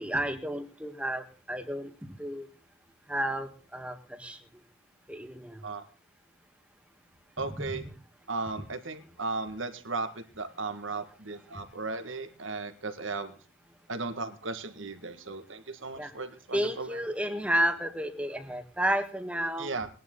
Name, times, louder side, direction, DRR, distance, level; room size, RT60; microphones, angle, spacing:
voice 1, 0.0-1.9 2.2-2.5 3.1-4.4 5.1-5.6 7.4-7.8 16.0-16.1 16.5-19.8, equal, 5° right, 7 dB, 1.6 m, -31 dB
voice 2, 7.4-7.8 8.3-13.3 13.9-17.0 19.6-19.9, right 3 dB, 75° right, 9 dB, 1.9 m, -36 dB
21.0 x 11.0 x 3.9 m, 0.37 s
head